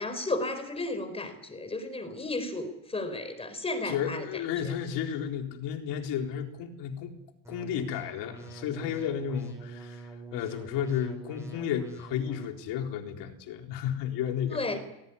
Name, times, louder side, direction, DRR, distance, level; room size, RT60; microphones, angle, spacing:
voice 1, 0.0-4.2 14.5-14.8, left 2 dB, 15° left, 10 dB, 4.4 m, -33 dB
voice 2, 3.8-7.1 7.5-14.8, left 9 dB, 60° left, 3 dB, 4.0 m, -33 dB
sound 1, 7.4-12.4, right 4 dB, 5° right, 7.5 m, -46 dB
26.5 x 18.0 x 9.9 m, 0.89 s
cardioid pair, 150°, 46 cm